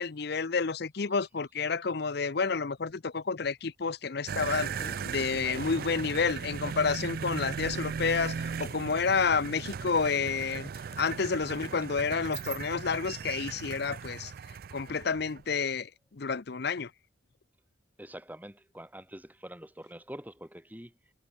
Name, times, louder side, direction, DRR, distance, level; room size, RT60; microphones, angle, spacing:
voice 1, 0.0-4.7 5.0-10.7 11.0-14.3 14.7-16.9, left 5 dB, 55° left, 0.7 m, -30 dB
Fart, 3.4-11.2, left 2 dB, 30° left, 4.5 m, -58 dB
sound 1, 4.3-15.6, right 6 dB, 50° right, 0.4 m, -37 dB
voice 2, 18.0-20.9, right 1 dB, 10° right, 2.7 m, -45 dB
head